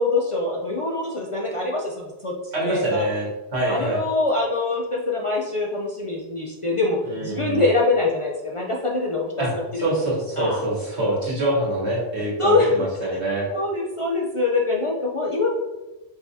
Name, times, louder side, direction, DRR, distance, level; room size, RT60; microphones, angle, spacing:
voice 1, 0.0-2.8 3.7-9.6 10.4-10.6 12.4-12.9 13.5-15.5, left 3 dB, 50° left, -2 dB, 0.4 m, -24 dB
voice 2, 2.5-4.0 7.0-7.6 9.4-13.5, right 1 dB, 90° right, -5 dB, 1.7 m, -25 dB
4.6 x 3.3 x 2.7 m, 1.1 s
omnidirectional pair, 1.1 m